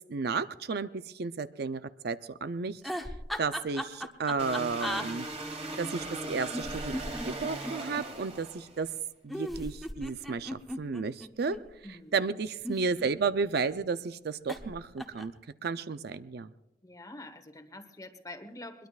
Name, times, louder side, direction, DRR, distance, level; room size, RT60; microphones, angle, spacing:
voice 1, 0.1-2.8 3.4-5.3 5.8-7.0 7.2-8.9 9.2-11.6 12.1-15.3 15.6-16.5, right 4 dB, 65° right, 12 dB, 0.5 m, -32 dB
Woman Evil Laughing, 2.8-5.1 6.5-8.0 9.3-11.6 12.5-13.5 14.5-14.7 15.0-15.4, equal, ahead, 0.9 m, -37 dB
sound 1, 4.4-8.9, right 2 dB, 35° right, 2.4 m, -39 dB
voice 2, 11.8-12.3 16.8-18.9, left 1 dB, 20° left, 7 dB, 1.2 m, -46 dB
22.0 x 21.5 x 2.4 m, 0.90 s
head